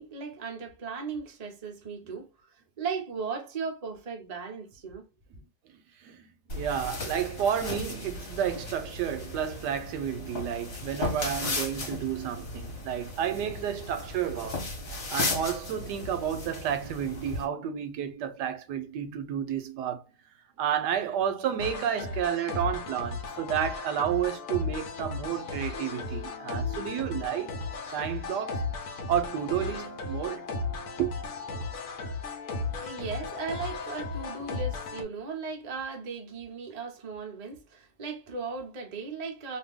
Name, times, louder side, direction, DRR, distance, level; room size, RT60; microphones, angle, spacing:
voice 1, 0.0-5.1 32.7-39.6, right 5 dB, 45° right, 0.4 m, -37 dB
voice 2, 6.0-14.6 15.1-20.0 20.6-27.5 27.9-30.5 31.0-31.2, right 9 dB, 75° right, 1.1 m, -31 dB
sound 1, 6.5-17.4, left 2 dB, 40° left, 1.2 m, -36 dB
sound 2, 21.6-35.0, left 3 dB, 60° left, 1.0 m, -35 dB
2.7 x 2.5 x 3.4 m
omnidirectional pair, 1.9 m